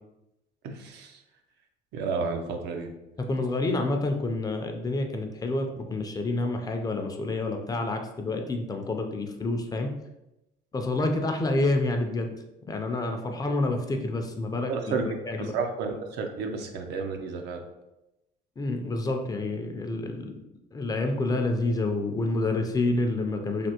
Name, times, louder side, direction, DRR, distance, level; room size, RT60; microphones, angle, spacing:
voice 1, 0.6-1.2 1.9-2.9 14.7-17.6, right 4 dB, 85° right, 4 dB, 0.5 m, -32 dB
voice 2, 3.3-9.9 10.7-12.3 12.7-14.7 15.1-15.5 18.6-20.4 20.7-23.7, left 2 dB, 20° left, 4 dB, 0.4 m, -28 dB
3.3 x 2.4 x 2.8 m, 0.92 s
cardioid pair, 110°, 17 cm